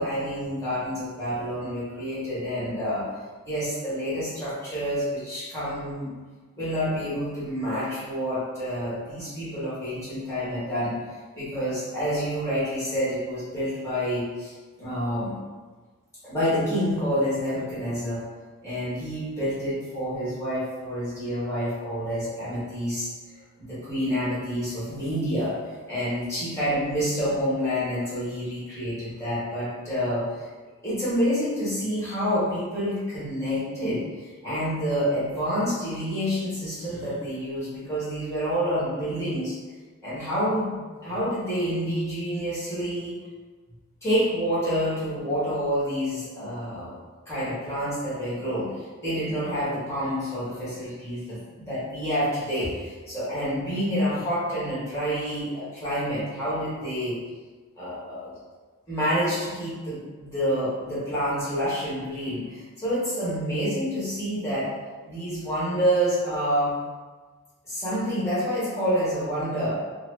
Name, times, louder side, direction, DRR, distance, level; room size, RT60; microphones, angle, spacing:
voice 1, 0.0-3.0 3.4-6.1 6.5-11.0 11.3-15.4 16.2-18.2 18.6-23.1 23.6-25.5 25.9-30.5 30.8-39.6 40.0-43.2 44.0-46.9 47.3-57.2 57.8-58.3 58.9-64.7 65.0-66.7 67.6-69.8, equal, 15° left, -11 dB, 1.2 m, -28 dB
2.8 x 2.1 x 3.4 m, 1.4 s
head